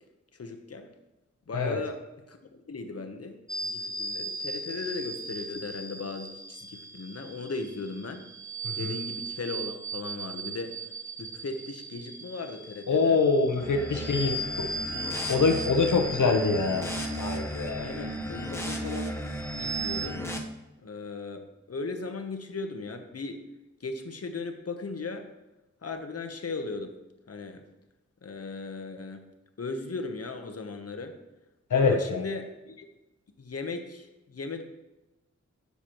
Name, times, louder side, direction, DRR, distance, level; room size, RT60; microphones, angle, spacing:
voice 1, 0.3-0.9 1.5-2.0 2.3-8.2 8.8-10.8 11.2-13.2 16.0-16.1 17.8-19.1 19.6-20.3 20.8-23.4 23.8-25.3 25.8-27.0 27.3-27.6 28.2-29.2 29.6-31.2 31.7-32.9 33.4-34.6, left 3 dB, 55° left, 6 dB, 1.0 m, -37 dB
sound 1, 3.5-20.1, right 2 dB, 10° right, 0.6 m, -38 dB
voice 2, 12.9-14.6 15.3-16.9 17.2-17.9 31.7-32.2, left 4 dB, 85° left, 4 dB, 0.9 m, -24 dB
sound 2, 13.6-20.4, equal, 10° left, 1.0 m, -35 dB
9.6 x 6.8 x 3.0 m, 1.0 s
wide cardioid pair, 75°, 30 cm